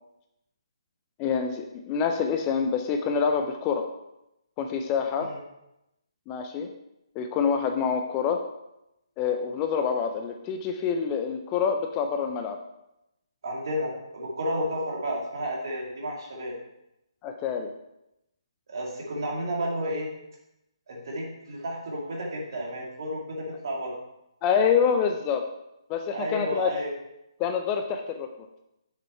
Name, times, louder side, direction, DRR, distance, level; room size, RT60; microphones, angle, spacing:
voice 1, 1.2-3.9 4.6-5.3 6.3-6.7 7.2-8.4 9.2-12.6 17.2-17.7 24.4-25.5 25.9-26.7 27.4-28.6, left 6 dB, 20° left, 5 dB, 0.5 m, -26 dB
voice 2, 13.4-16.6 18.7-20.1 20.9-24.0 26.1-26.9, equal, 50° right, -2 dB, 2.4 m, -32 dB
7.0 x 6.8 x 4.3 m, 0.88 s
figure-of-eight pair, 140°, 3 cm